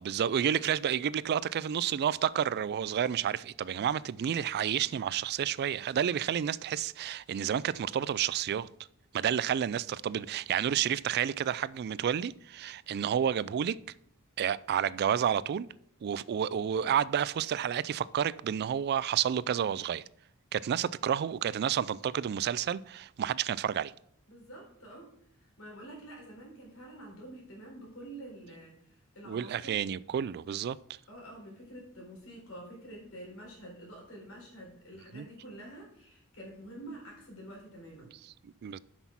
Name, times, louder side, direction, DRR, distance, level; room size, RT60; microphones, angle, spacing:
voice 1, 0.0-8.7 9.1-13.8 14.4-15.7 16.0-20.0 20.5-23.9 29.3-30.8 35.1-35.3 38.4-38.8, right 9 dB, 50° right, 0.3 m, -30 dB
voice 2, 24.3-25.1 25.6-29.8 31.1-38.1, right 1 dB, 65° left, 3.9 m, -48 dB
7.9 x 6.2 x 5.8 m
head